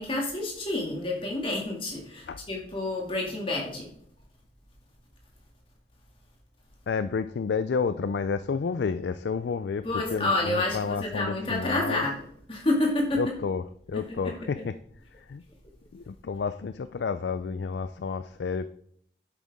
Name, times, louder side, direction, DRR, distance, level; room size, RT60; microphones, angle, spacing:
voice 1, 0.0-3.9 9.8-13.2 13.9-14.4, left 2 dB, 30° left, 2.3 m, -29 dB
voice 2, 6.9-12.1 13.1-13.6 13.9-14.7 15.2-15.4 15.9-18.7, left 5 dB, 70° left, 0.4 m, -30 dB
10.0 x 8.2 x 3.6 m
head